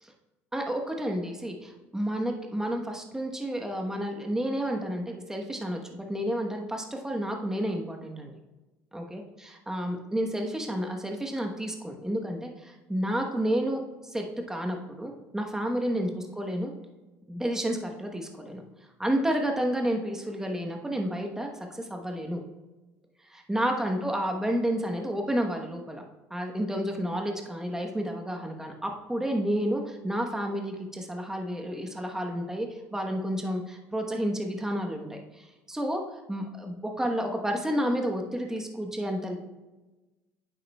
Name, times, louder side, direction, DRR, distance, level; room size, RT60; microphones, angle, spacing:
voice 1, 0.5-8.4 8.9-16.7 17.3-18.6 19.0-22.4 23.3-26.0 26.3-36.0 36.3-39.4, equal, 5° right, 2 dB, 1.1 m, -31 dB
9.0 x 7.4 x 2.3 m, 1.1 s
hypercardioid pair, 75°, 7 cm